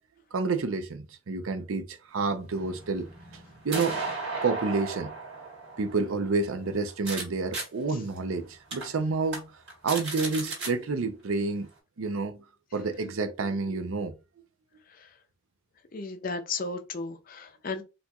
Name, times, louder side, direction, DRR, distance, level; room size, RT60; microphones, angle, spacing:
voice 1, 0.3-3.1 3.6-4.0 4.4-5.1 5.8-9.5 9.8-11.7 12.0-12.4 12.7-14.1, right 4 dB, 80° right, 0.5 m, -29 dB
sound 1, 2.5-7.2 7.5-7.6 8.2-8.3 8.7-8.8 9.2-9.4 9.7-10.7, right 3 dB, 55° right, 1.5 m, -35 dB
voice 2, 15.9-17.8, left 4 dB, 40° left, 0.5 m, -34 dB
4.2 x 2.5 x 2.3 m
head